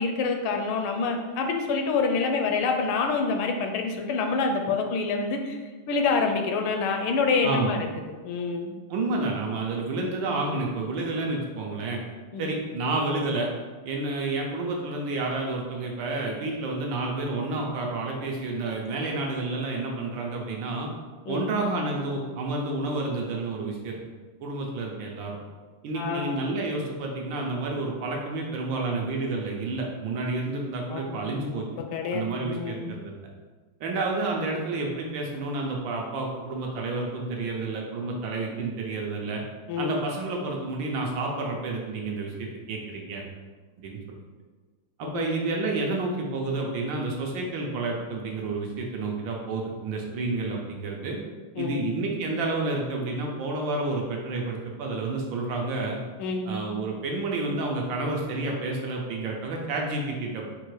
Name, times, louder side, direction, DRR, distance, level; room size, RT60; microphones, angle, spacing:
voice 1, 0.0-5.6 5.9-7.8 8.2-8.8 12.3-12.5 21.3-21.4 25.9-26.5 30.9-31.2 31.9-32.9 39.7-39.9 45.0-45.3 51.6-51.9 56.2-56.5, left 4 dB, 80° left, 4 dB, 1.4 m, -27 dB
voice 2, 7.4-7.7 8.9-12.0 12.4-13.5 13.8-20.9 21.3-24.0 24.4-25.4 25.8-31.7 32.1-33.1 33.8-39.4 39.8-43.2 43.8-44.0 45.0-51.2 51.6-56.0 56.5-60.5, right 2 dB, 70° right, 0 dB, 1.2 m, -30 dB
4.6 x 2.5 x 4.6 m, 1.4 s
omnidirectional pair, 2.4 m